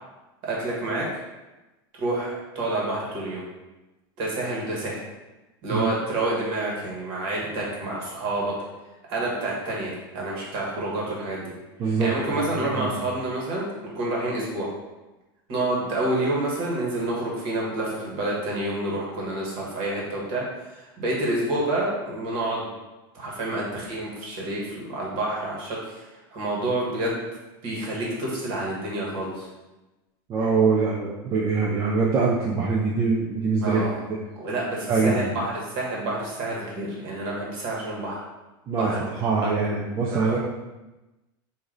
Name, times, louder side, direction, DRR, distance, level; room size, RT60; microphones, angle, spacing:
voice 1, 0.4-1.1 2.0-3.5 4.2-5.0 5.6-8.5 9.1-11.5 11.8-14.7 15.5-22.7 23.1-26.0 26.3-27.2 27.6-29.5 33.6-34.0 34.4-38.2 38.8-39.0 39.7-39.8 40.1-40.4, right 2 dB, 40° right, -4 dB, 1.4 m, -28 dB
voice 2, 11.8-13.1 30.3-33.8 34.9-35.3 38.7-40.4, right 4 dB, 20° right, -3 dB, 0.4 m, -24 dB
4.8 x 2.6 x 3.8 m, 1.1 s
supercardioid pair, 170°, 12 cm